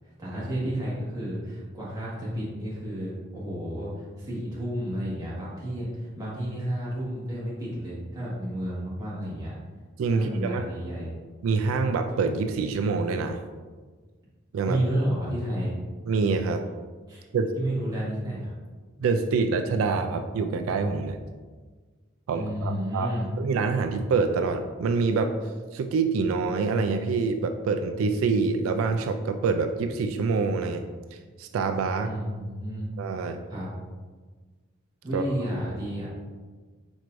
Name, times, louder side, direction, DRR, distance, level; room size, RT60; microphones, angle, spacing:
voice 1, 0.2-9.5 10.1-11.1 14.6-15.7 17.1-17.2 17.5-18.5 22.3-23.3 32.0-32.9 33.5-33.7 35.0-36.1, right 1 dB, 20° right, -8 dB, 1.5 m, -31 dB
voice 2, 10.0-10.6 11.4-13.4 14.5-14.8 16.1-16.6 17.3-17.5 19.0-21.2 22.3-25.4 25.7-30.8 31.1-32.1 33.0-33.4 35.1-35.2, right 4 dB, 90° right, 7 dB, 0.3 m, -26 dB
4.6 x 4.5 x 2.5 m, 1.4 s
head